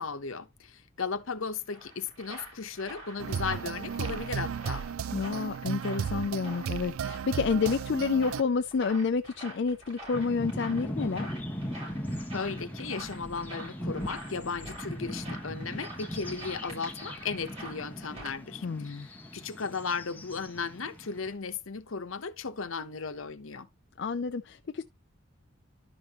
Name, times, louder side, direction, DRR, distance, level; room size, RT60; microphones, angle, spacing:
voice 1, 0.0-4.9 12.3-23.7, left 5 dB, 75° left, 0.9 m, -36 dB
sound 1, 1.6-18.4, right 1 dB, 30° right, 6.4 m, -47 dB
sound 2, 3.2-8.4, right 7 dB, 80° right, 0.4 m, -34 dB
voice 2, 5.1-11.3 18.6-19.1 24.0-24.8, left 5 dB, 55° left, 0.4 m, -29 dB
sound 3, 10.1-21.3, equal, 10° left, 1.5 m, -39 dB
11.5 x 6.0 x 2.9 m
head